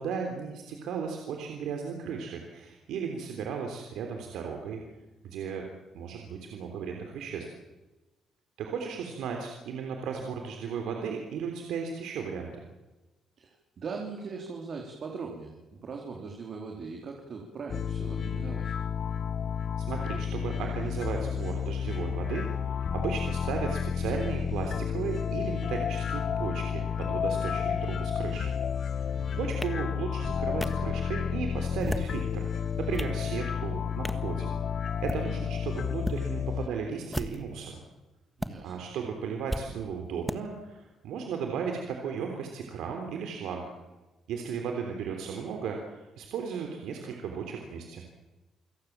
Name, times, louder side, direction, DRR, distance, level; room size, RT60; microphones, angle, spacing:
voice 1, 0.0-4.8 5.2-5.7 5.9-7.5 8.6-12.6 19.9-28.5 28.9-34.5 35.0-37.8 38.6-43.6 44.3-48.1, right 6 dB, 85° right, 3 dB, 3.5 m, -35 dB
voice 2, 13.4-18.7 29.1-29.5 38.4-38.8, right 4 dB, 55° right, 1 dB, 3.9 m, -40 dB
sound 1, 17.7-36.7, left 7 dB, 55° left, 0.8 m, -31 dB
sound 2, 29.6-29.7 30.6-30.7 31.7-32.2 32.7-33.2 34.0-34.3 34.9-35.2 36.0-36.2 37.0-37.6 38.4-38.5 39.5-39.6 40.3-40.4, equal, ahead, 1.5 m, -34 dB
28.5 x 17.5 x 7.5 m, 1.1 s
cardioid pair, 90°, 0 cm